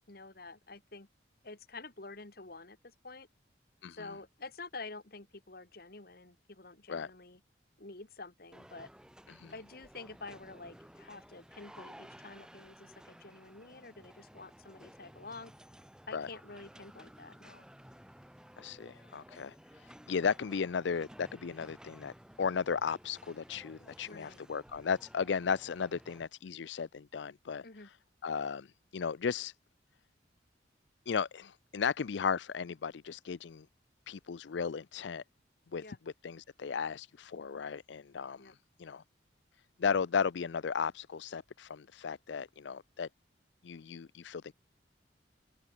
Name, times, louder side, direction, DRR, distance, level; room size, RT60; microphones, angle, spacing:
voice 1, 0.1-1.1 1.4-3.3 3.9-7.4 7.8-8.9 9.5-15.5 16.1-17.7 24.1-24.4 27.6-27.9 35.8-36.0 38.4-38.6, left 3 dB, 50° left, 2.0 m, -48 dB
sound 1, 8.5-26.3, equal, 5° right, 6.0 m, -55 dB
voice 2, 18.6-22.1 22.4-27.6 28.2-29.5 31.1-33.7 34.1-35.2 35.7-35.8 36.2-38.5 38.8-39.0 39.8-43.1 43.6-44.5, left 6 dB, 70° left, 0.5 m, -35 dB
open air
head